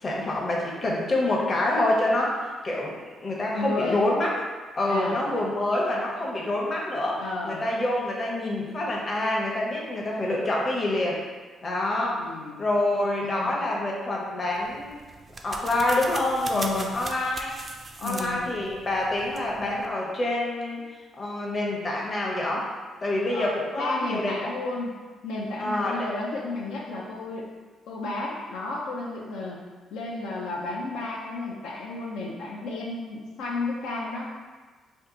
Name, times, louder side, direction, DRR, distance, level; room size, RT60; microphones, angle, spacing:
voice 1, 0.0-4.3 4.8-11.2 11.6-12.2 12.6-15.0 15.4-17.5 18.0-20.8 21.2-22.7 23.0-24.5 25.6-26.1, left 1 dB, 35° left, -3 dB, 0.7 m, -27 dB
voice 2, 3.5-4.0 4.9-5.4 7.2-7.6 12.1-12.6 12.9-13.5 16.5-16.9 18.0-18.4 23.3-25.0 25.2-27.5 27.9-29.6 29.9-34.3, left 2 dB, 90° left, -3 dB, 0.5 m, -32 dB
sound 1, 14.5-19.9, right 3 dB, 35° right, 0.3 m, -40 dB
2.7 x 2.2 x 3.7 m, 1.4 s
cardioid pair, 90°, 0 cm